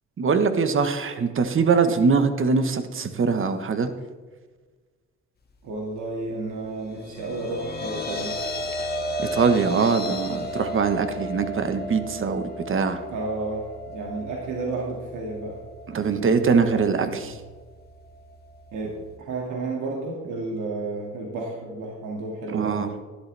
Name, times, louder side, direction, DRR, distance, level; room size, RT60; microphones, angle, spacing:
voice 1, 0.2-3.9 9.2-13.0 15.9-17.3 22.5-22.9, right 5 dB, 45° right, 9 dB, 1.3 m, -22 dB
voice 2, 5.6-8.4 13.1-15.6 16.0-17.3 18.7-22.9, right 3 dB, 80° right, -2 dB, 2.3 m, -32 dB
sound 1, 6.8-19.2, left 1 dB, 30° left, 1.8 m, -35 dB
13.0 x 11.5 x 3.5 m, 1.4 s
cardioid pair, 90°, 30 cm